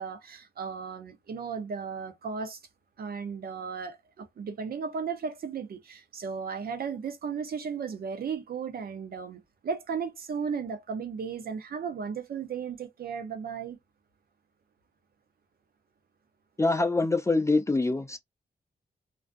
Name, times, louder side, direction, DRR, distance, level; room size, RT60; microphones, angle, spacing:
voice 1, 0.0-2.6 3.0-13.8, right 6 dB, 60° right, 0.6 m, -35 dB
voice 2, 16.6-18.2, left 3 dB, 15° left, 0.4 m, -25 dB
2.4 x 2.1 x 2.4 m
cardioid pair, 100°, 17 cm